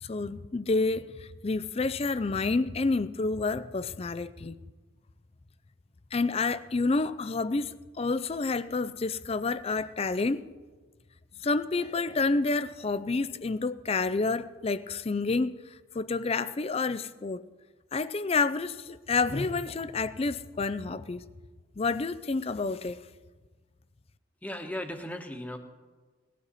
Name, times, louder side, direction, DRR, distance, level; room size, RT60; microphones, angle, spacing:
voice 1, 0.0-4.6 6.1-10.4 11.4-17.4 17.9-21.2 21.8-23.0, left 3 dB, 30° left, 0.4 m, -29 dB
voice 2, 24.4-25.6, left 1 dB, 5° left, 1.1 m, -36 dB
19.0 x 12.5 x 4.1 m
head